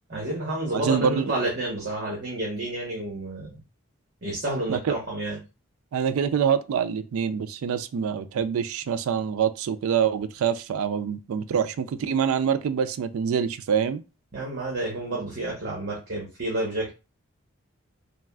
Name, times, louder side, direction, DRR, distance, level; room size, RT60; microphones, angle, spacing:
voice 1, 0.1-3.6 4.2-5.4 14.3-16.9, right 1 dB, 50° right, 0.9 m, -30 dB
voice 2, 0.7-1.3 4.7-4.9 5.9-14.0, right 7 dB, 75° right, 0.3 m, -25 dB
3.3 x 2.4 x 2.3 m
head